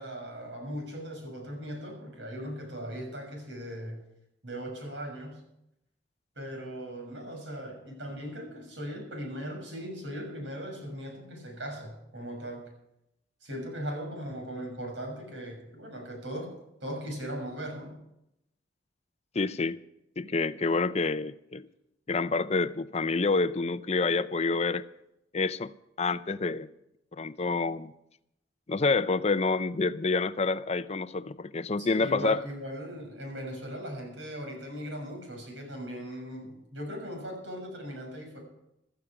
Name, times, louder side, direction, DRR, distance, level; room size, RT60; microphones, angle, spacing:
voice 1, 0.0-4.0 4.4-5.4 6.3-12.7 13.4-16.5 16.8-17.9 31.8-38.4, equal, 75° right, 6.6 m, -38 dB
voice 2, 19.3-19.8 20.2-21.7 22.1-24.8 25.3-25.7 26.0-26.7 27.1-27.9 28.7-32.4, left 3 dB, 35° left, 0.5 m, -28 dB
16.0 x 13.5 x 4.9 m
head